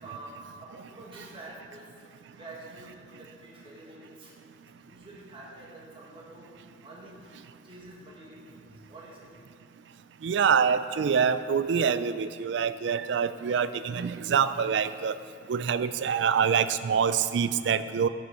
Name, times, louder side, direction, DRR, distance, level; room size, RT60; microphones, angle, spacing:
voice 1, 0.0-2.1 2.3-6.6 6.8-7.4 7.6-9.3, right 2 dB, 30° right, -3 dB, 1.7 m, -47 dB
voice 2, 10.2-15.2 15.5-18.1, right 7 dB, 75° right, 13 dB, 0.4 m, -25 dB
12.0 x 6.3 x 4.2 m, 2.4 s
head